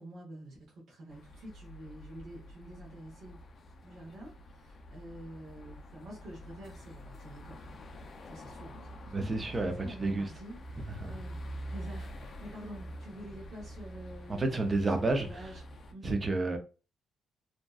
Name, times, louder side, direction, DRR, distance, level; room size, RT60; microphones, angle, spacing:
voice 1, 0.0-3.4 3.8-7.8 8.3-15.6 15.9-16.3, right 1 dB, 65° right, 0.9 m, -48 dB
sound 1, 1.1-15.9, equal, 45° left, 0.4 m, -46 dB
voice 2, 9.1-10.3 11.1-11.2 14.3-15.5 16.0-16.6, right 2 dB, 25° right, 0.5 m, -30 dB
2.6 x 2.1 x 2.3 m
cardioid pair, 125°, 0 cm